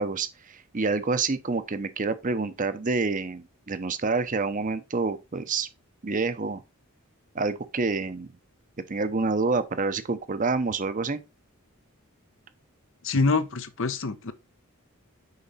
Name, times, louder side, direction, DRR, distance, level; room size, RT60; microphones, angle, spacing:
voice 1, 0.0-5.7 6.0-6.6 7.3-8.3 8.9-11.2, right 3 dB, 40° right, 0.7 m, -27 dB
voice 2, 13.0-14.3, left 3 dB, 60° left, 0.8 m, -25 dB
6.7 x 5.1 x 4.2 m
head